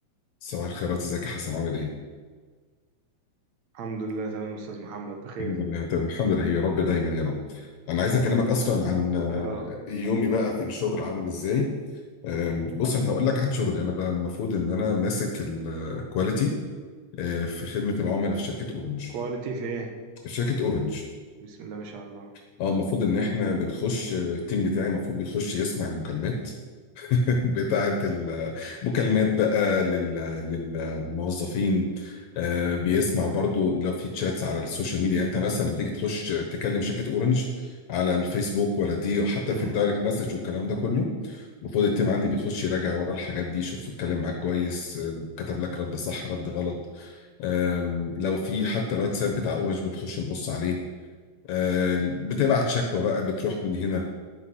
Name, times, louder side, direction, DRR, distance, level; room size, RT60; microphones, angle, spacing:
voice 1, 0.4-1.9 5.4-11.7 12.2-16.5 17.2-19.1 20.2-21.0 22.6-26.5 27.0-50.8 51.5-54.0, left 4 dB, 75° left, 1 dB, 2.4 m, -27 dB
voice 2, 3.7-5.6 9.3-9.7 19.1-20.0 21.4-22.3 23.1-23.4 39.4-39.8, right 4 dB, 70° right, 3 dB, 2.5 m, -34 dB
11.0 x 5.8 x 7.9 m, 1.5 s
omnidirectional pair, 3.3 m